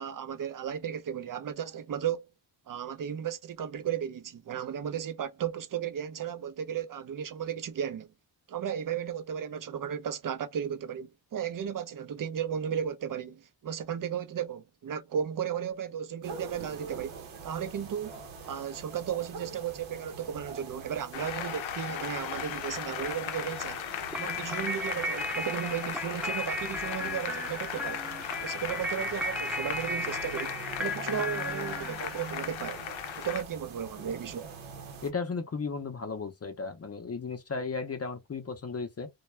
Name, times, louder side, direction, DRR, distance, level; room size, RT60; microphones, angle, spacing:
voice 1, 0.0-2.3 2.7-8.1 8.5-18.2 18.4-23.8 24.2-28.1 28.4-32.9 33.2-34.5, right 8 dB, 45° right, 0.6 m, -35 dB
sound 1, 16.2-35.1, right 5 dB, 90° right, 0.8 m, -44 dB
Applause, 21.1-33.4, left 10 dB, 75° left, 0.6 m, -37 dB
sound 2, 24.1-32.4, left 1 dB, 5° right, 0.7 m, -36 dB
voice 2, 35.0-39.1, left 4 dB, 30° left, 0.6 m, -35 dB
2.2 x 2.2 x 3.1 m
cardioid pair, 55°, 47 cm